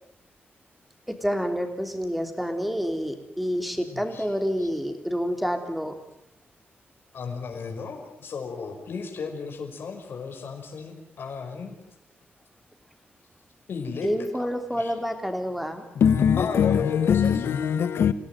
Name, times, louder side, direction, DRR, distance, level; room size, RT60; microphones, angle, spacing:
voice 1, 1.1-5.9 14.0-15.8, equal, ahead, 3.2 m, -28 dB
voice 2, 3.8-4.3 4.6-4.7 7.1-11.8 13.7-14.1 14.4-14.5 14.8-14.9 16.4-17.5, left 5 dB, 60° left, 5.5 m, -35 dB
voice 3, 16.0-18.1, left 7 dB, 80° left, 1.4 m, -21 dB
27.5 x 17.0 x 9.3 m
wide cardioid pair, 145°, 4 cm